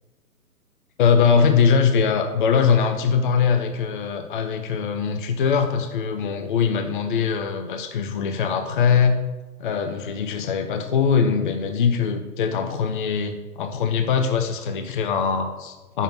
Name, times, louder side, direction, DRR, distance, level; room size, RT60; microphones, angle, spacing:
voice 1, 1.0-9.1 9.6-16.0, left 6 dB, 35° left, 6 dB, 0.6 m, -22 dB
6.2 x 5.4 x 7.0 m, 1.2 s
figure-of-eight pair, 135°, 48 cm